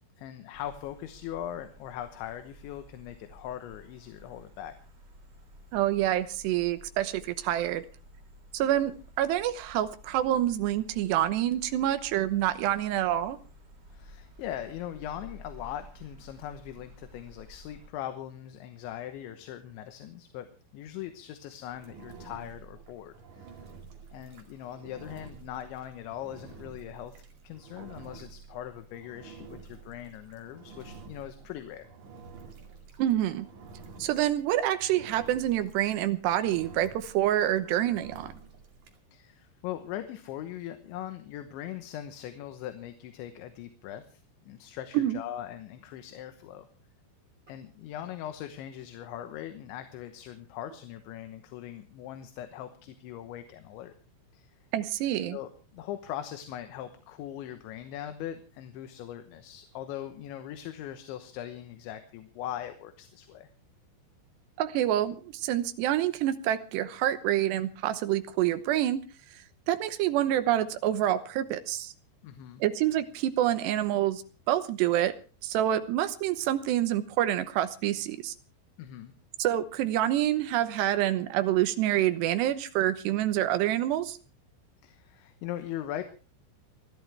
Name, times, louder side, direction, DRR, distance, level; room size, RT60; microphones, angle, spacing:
voice 1, 0.2-4.7 13.9-20.5 20.7-23.7 24.1-31.9 39.1-46.7 47.5-53.9 54.3-54.5 55.3-63.5 72.2-72.6 78.8-79.1 84.8-86.0, left 11 dB, 80° left, 8 dB, 3.4 m, -40 dB
sound 1, 0.5-17.9, equal, 30° right, 2.3 m, -53 dB
voice 2, 5.7-7.8 8.5-13.4 33.0-33.5 34.0-38.3 44.9-45.2 54.7-55.4 64.6-69.0 69.7-71.9 72.6-74.2 74.5-75.1 75.4-78.3 79.4-84.2, right 12 dB, 75° right, 11 dB, 2.9 m, -27 dB
Engine, 21.7-39.0, right 5 dB, 50° right, 3.1 m, -50 dB
28.0 x 12.0 x 3.4 m, 0.35 s
omnidirectional pair, 5.4 m